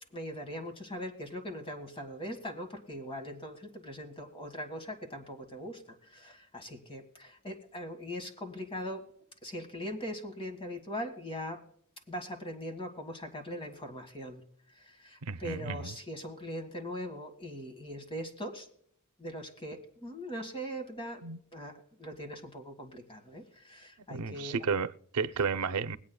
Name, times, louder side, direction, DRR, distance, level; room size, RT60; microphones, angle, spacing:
voice 1, 0.1-9.0 9.4-11.6 12.1-14.4 14.8-18.7 19.2-21.2 21.5-21.7 22.0-24.7, equal, 25° left, 1.6 m, -41 dB
voice 2, 15.2-15.9 21.2-21.4 24.1-26.0, right 5 dB, 90° right, 0.6 m, -32 dB
22.5 x 8.5 x 2.2 m
head